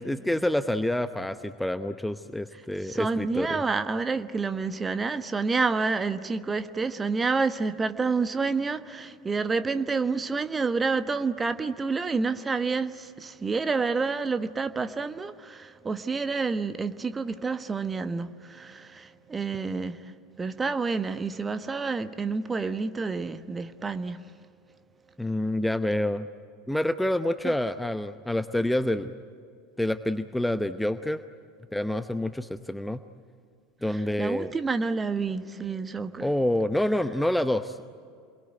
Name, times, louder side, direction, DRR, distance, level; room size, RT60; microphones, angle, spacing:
voice 1, 0.0-3.6 25.2-26.3 26.7-29.1 29.8-31.2 31.7-33.0 33.8-34.5 36.2-37.8, left 1 dB, 5° left, 0.9 m, -27 dB
voice 2, 2.8-24.3 27.4-27.5 33.9-36.3, right 4 dB, 20° right, 1.3 m, -29 dB
28.5 x 22.5 x 9.2 m
figure-of-eight pair, 75°, 0 cm